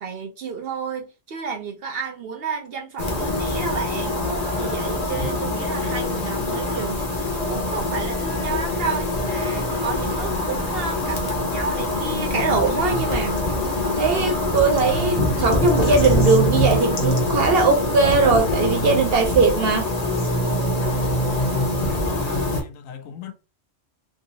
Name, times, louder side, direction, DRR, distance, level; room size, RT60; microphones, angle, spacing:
voice 1, 0.0-4.2 4.6-7.0 7.5-13.4 14.0-19.9, right 4 dB, 60° right, 0.6 m, -24 dB
sound 1, 3.0-22.6, left 1 dB, 35° left, 0.8 m, -24 dB
voice 2, 21.3-23.3, left 7 dB, 80° left, 1.1 m, -35 dB
3.5 x 2.5 x 2.7 m
omnidirectional pair, 1.4 m